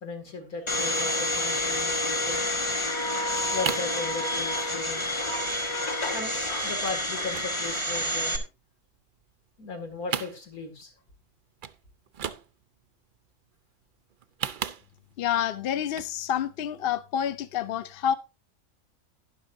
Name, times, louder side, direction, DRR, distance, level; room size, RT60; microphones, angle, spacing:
voice 1, 0.0-2.5 3.5-5.1 6.1-8.4 9.6-10.9, left 3 dB, 80° left, 2.6 m, -37 dB
Domestic sounds home sounds, 0.7-8.4, left 1 dB, 25° left, 0.9 m, -28 dB
sound 1, 3.2-4.0 4.3-4.7 5.0-5.1 5.3-5.6 5.9-6.4 6.8-7.0 7.3-8.6 8.9-9.7 10.0-10.9 11.2-11.3 11.6-11.8 12.1-12.8 14.1-15.2 15.8-16.2 16.5-16.6, right 8 dB, 60° right, 0.5 m, -35 dB
voice 2, 15.2-18.1, left 9 dB, 55° left, 0.7 m, -28 dB
11.5 x 10.5 x 2.6 m
omnidirectional pair, 1.5 m